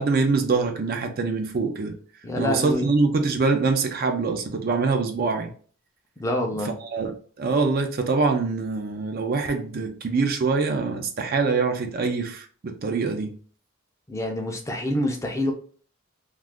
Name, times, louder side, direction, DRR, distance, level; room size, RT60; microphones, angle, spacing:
voice 1, 0.0-2.0 2.3-5.5 6.8-13.3, right 4 dB, 45° right, 0.4 m, -24 dB
voice 2, 2.2-2.9 6.2-6.8 14.1-15.5, left 1 dB, 15° left, 0.4 m, -26 dB
2.4 x 2.4 x 3.5 m
head